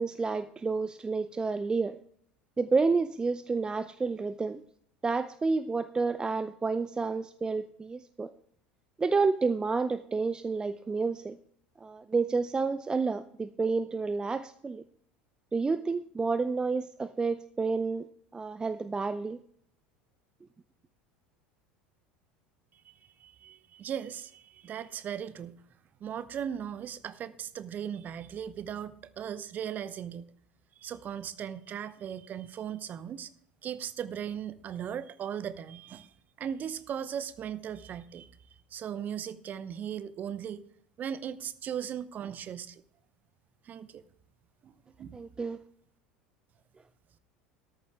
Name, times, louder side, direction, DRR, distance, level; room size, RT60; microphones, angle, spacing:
voice 1, 0.0-2.0 2.6-4.6 5.0-8.3 9.0-11.4 11.8-14.8 15.5-18.1 18.3-19.4 45.1-45.6, right 4 dB, 15° right, 12 dB, 0.5 m, -30 dB
voice 2, 22.7-25.6 26.0-30.3 30.8-33.3 33.6-36.1 36.4-38.3 38.7-40.6 41.0-42.8 43.6-44.1 44.6-45.2, right 9 dB, 35° right, 16 dB, 0.8 m, -38 dB
13.5 x 11.0 x 3.5 m, 0.66 s
figure-of-eight pair, 70°, 5 cm